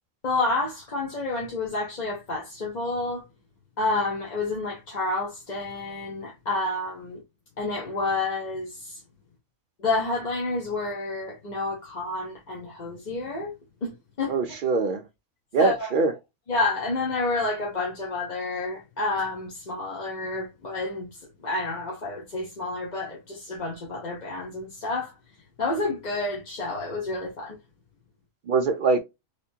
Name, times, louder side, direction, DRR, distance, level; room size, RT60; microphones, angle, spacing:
voice 1, 0.2-3.2 3.8-7.2 7.6-9.0 9.8-13.5 13.8-14.3 15.6-15.9 16.5-21.1 21.4-25.1 25.6-27.6, left 3 dB, 40° left, 0.9 m, -29 dB
voice 2, 14.3-15.0 15.5-16.1 28.5-29.0, right 4 dB, 70° right, 0.5 m, -23 dB
3.3 x 2.9 x 2.7 m
omnidirectional pair, 1.4 m